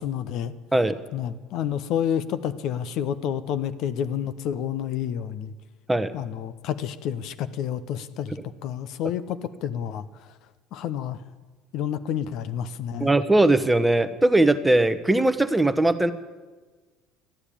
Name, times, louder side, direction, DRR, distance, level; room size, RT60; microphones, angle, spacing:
voice 1, 0.0-0.5 1.1-5.5 6.1-10.3 10.7-11.2 11.7-13.2, left 9 dB, 60° left, 11 dB, 0.7 m, -29 dB
voice 2, 13.0-16.1, right 2 dB, 10° right, 11 dB, 1.0 m, -20 dB
13.0 x 9.9 x 8.7 m, 1.3 s
hypercardioid pair, 65°, 0 cm